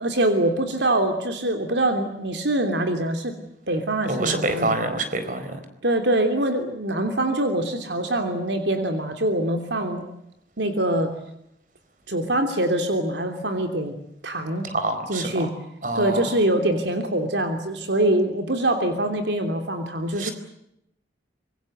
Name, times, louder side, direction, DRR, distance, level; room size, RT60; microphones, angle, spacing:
voice 1, 0.0-3.4 3.7-4.8 5.8-10.1 10.6-11.1 12.1-13.9 14.2-14.7 15.1-15.5 15.9-20.3, right 1 dB, 75° right, 6 dB, 3.1 m, -24 dB
voice 2, 4.0-5.6 14.6-15.5 15.8-16.3 20.2-20.3, right 2 dB, 45° right, 9 dB, 4.4 m, -26 dB
25.5 x 23.5 x 8.0 m, 0.78 s
head